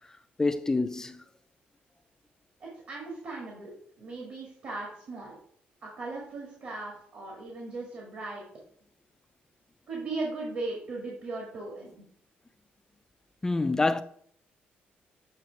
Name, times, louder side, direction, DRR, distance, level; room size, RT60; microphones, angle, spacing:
voice 1, 0.4-1.2 13.4-14.0, left 3 dB, 15° left, 0.3 m, -26 dB
voice 2, 2.6-5.4 5.8-8.4 9.9-12.0, right 3 dB, 50° right, 1.7 m, -38 dB
7.7 x 2.9 x 4.5 m
cardioid pair, 125°, 4 cm